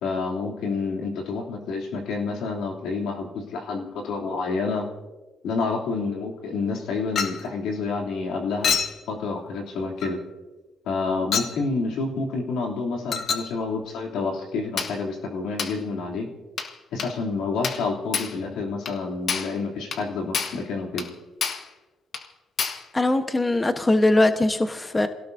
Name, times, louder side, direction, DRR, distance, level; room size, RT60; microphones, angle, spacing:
voice 1, 0.0-4.9 5.4-8.8 9.1-10.2 10.8-16.3 16.9-21.0, left 4 dB, 85° left, 0 dB, 3.1 m, -28 dB
Chink clink, 7.2-7.5 8.6-9.0 10.0-10.2 11.3-11.6 13.1-13.5 14.8-15.0 15.6-15.8 16.6-16.7 17.0-17.2 17.6-17.9 18.1-18.4 18.9-19.0 19.3-19.6 19.9-20.0 20.3-20.6 21.0-21.1 21.4-21.7 22.1-22.3 22.6-22.9, left 6 dB, 60° left, 1.6 m, -28 dB
voice 2, 22.9-25.1, left 2 dB, 20° left, 7 dB, 1.1 m, -21 dB
28.0 x 17.5 x 2.7 m, 1.2 s
cardioid pair, 90°, 0 cm